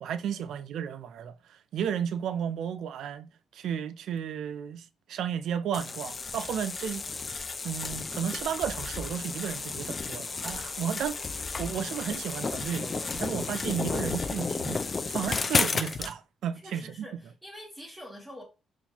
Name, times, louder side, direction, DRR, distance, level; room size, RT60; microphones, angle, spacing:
voice 1, 0.0-1.3 1.7-7.0 7.6-11.2 11.6-17.1, right 8 dB, 75° right, 0.3 m, -33 dB
sound 1, 5.7-16.1, left 4 dB, 35° left, 0.3 m, -32 dB
voice 2, 16.6-18.4, equal, 5° right, 1.0 m, -46 dB
4.2 x 2.4 x 2.9 m
cardioid pair, 90°, 0 cm